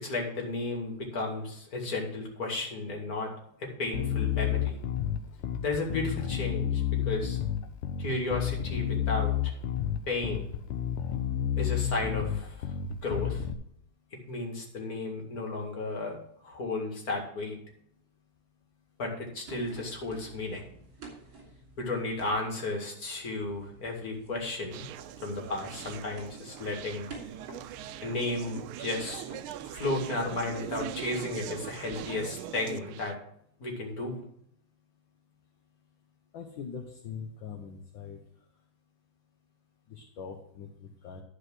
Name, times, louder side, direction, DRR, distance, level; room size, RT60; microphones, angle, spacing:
voice 1, 0.0-3.3 3.6-4.8 5.6-7.4 8.0-9.5 10.1-10.5 11.6-12.7 13.0-13.4 14.3-16.2 16.4-17.6 19.0-20.6 21.8-24.8 25.2-27.1 28.0-29.2 29.7-33.1 33.6-34.2, left 2 dB, 45° left, 0 dB, 2.7 m, -33 dB
Bass guitar, 3.9-13.5, left 10 dB, 90° left, 1.7 m, -30 dB
sound 1, 19.5-22.4 23.4-32.4, right 3 dB, 65° right, 3.7 m, -50 dB
Conversation, 24.7-33.1, right 11 dB, 85° right, 1.5 m, -41 dB
voice 2, 36.3-38.2 39.9-41.2, left 6 dB, 65° left, 2 dB, 1.7 m, -42 dB
12.0 x 4.9 x 6.3 m, 0.70 s
omnidirectional pair, 2.3 m